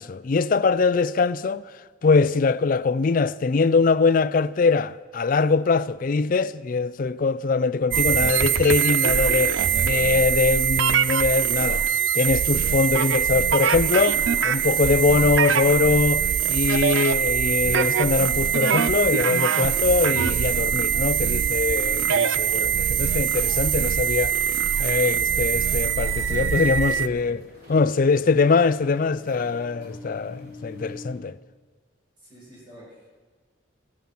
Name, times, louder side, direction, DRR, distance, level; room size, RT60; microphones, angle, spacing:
voice 1, 0.0-1.6 2.0-11.8 12.1-16.2 16.5-24.3 24.8-27.4 27.7-31.4, left 4 dB, 45° left, 0.4 m, -22 dB
sound 1, 7.9-27.1, right 8 dB, 85° right, 0.5 m, -23 dB
sound 2, 17.4-31.1, left 1 dB, 55° right, 3.8 m, -44 dB
voice 2, 32.2-33.1, equal, 25° right, 6.3 m, -46 dB
15.5 x 12.5 x 6.0 m
head